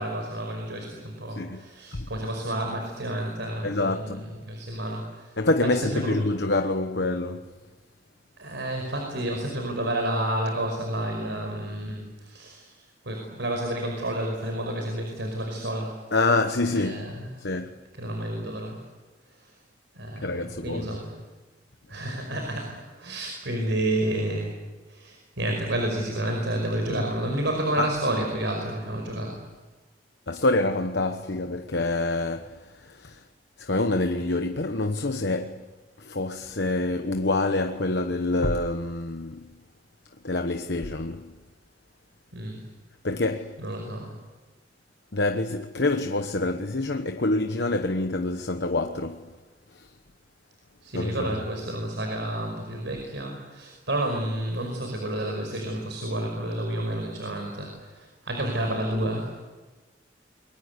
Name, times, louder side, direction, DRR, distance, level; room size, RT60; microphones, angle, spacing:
voice 1, 0.0-5.4 5.7-6.3 8.4-16.1 16.7-17.5 18.0-18.8 19.4-19.5 19.9-21.2 21.9-24.6 24.9-29.5 42.3-42.6 43.6-44.2 50.8-59.4, right 1 dB, 80° right, 5.3 m, -30 dB
voice 2, 1.3-1.6 1.9-2.1 3.6-4.2 5.4-7.5 16.1-17.8 20.2-20.9 26.9-27.0 27.8-27.9 30.3-33.2 33.6-35.6 36.0-39.5 40.2-41.3 43.0-43.6 45.1-49.3 49.7-49.9 50.9-51.4, left 2 dB, 65° left, 1.1 m, -27 dB
30.0 x 23.0 x 8.3 m
head